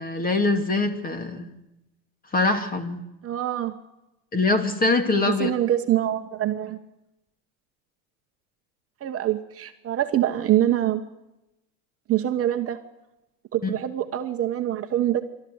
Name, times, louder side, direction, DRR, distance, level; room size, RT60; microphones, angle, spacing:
voice 1, 0.0-1.5 2.3-3.1 4.3-5.5 13.6-13.7, left 3 dB, 20° left, 8 dB, 2.4 m, -23 dB
voice 2, 3.2-3.7 5.3-6.8 9.0-11.0 12.1-12.8 13.5-15.3, right 12 dB, 30° right, 6 dB, 1.2 m, -24 dB
29.5 x 13.0 x 8.0 m, 0.95 s
supercardioid pair, 110°, 44 cm